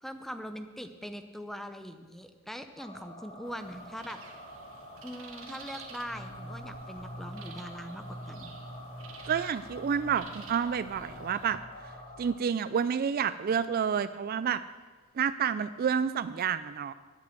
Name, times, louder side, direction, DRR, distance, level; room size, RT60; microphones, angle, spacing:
voice 1, 0.0-4.2 5.0-8.5, equal, ahead, 8 dB, 0.6 m, -42 dB
sound 1, 2.8-12.4, equal, 30° left, 1.7 m, -45 dB
sound 2, 3.4-11.6, right 4 dB, 65° right, 1.4 m, -51 dB
voice 2, 9.3-11.6 12.2-14.6 15.2-16.9, right 7 dB, 45° right, 14 dB, 0.3 m, -29 dB
10.5 x 8.3 x 7.8 m, 1.4 s
head